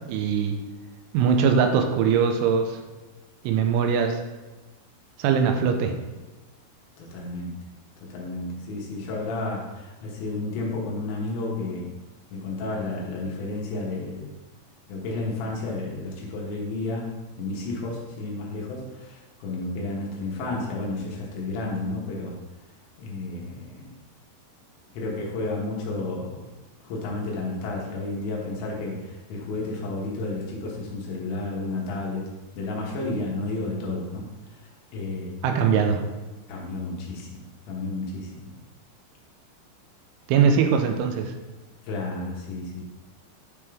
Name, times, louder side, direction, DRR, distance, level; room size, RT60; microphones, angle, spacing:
voice 1, 0.1-0.6 1.1-2.8 3.4-4.2 5.2-5.9 35.4-36.0 40.3-41.3, right 6 dB, 85° right, 5 dB, 3.1 m, -21 dB
voice 2, 7.0-7.6 8.1-11.9 12.3-14.3 14.9-22.3 23.0-23.9 24.9-26.4 26.8-32.2 32.6-34.3 34.9-35.3 35.7-35.8 36.5-38.5 41.8-42.8, left 2 dB, 75° left, -2 dB, 3.2 m, -32 dB
9.5 x 3.6 x 3.4 m, 1.1 s
omnidirectional pair, 5.6 m